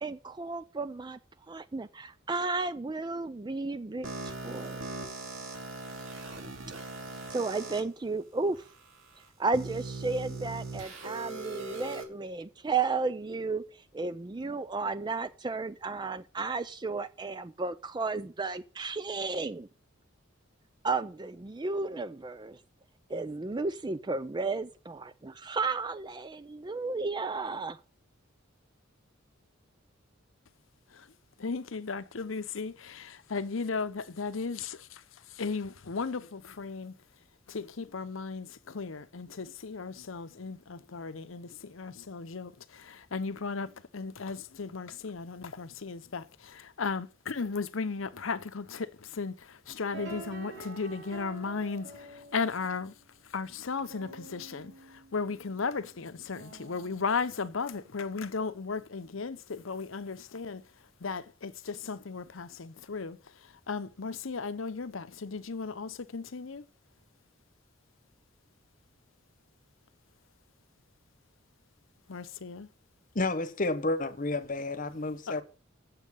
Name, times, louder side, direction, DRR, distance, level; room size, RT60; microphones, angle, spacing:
voice 1, 0.0-1.2 1.5-4.1 4.4-5.1 7.3-8.6 9.4-13.6 13.9-19.7 20.8-22.6 23.1-27.8, right 3 dB, 20° right, 0.4 m, -33 dB
sound 1, 4.0-7.8 8.5-8.6 9.5-12.0, right 3 dB, 80° right, 2.7 m, -40 dB
voice 2, 31.4-35.0 35.4-36.9 37.5-52.9 53.3-54.7 55.1-60.6 61.0-63.2 63.7-66.6 72.1-72.7 75.3-75.4, left 4 dB, 75° left, 0.8 m, -36 dB
sound 2, 49.9-58.1, right 3 dB, 60° right, 3.3 m, -48 dB
voice 3, 73.1-75.4, left 2 dB, 40° left, 1.1 m, -30 dB
7.6 x 7.4 x 8.3 m
head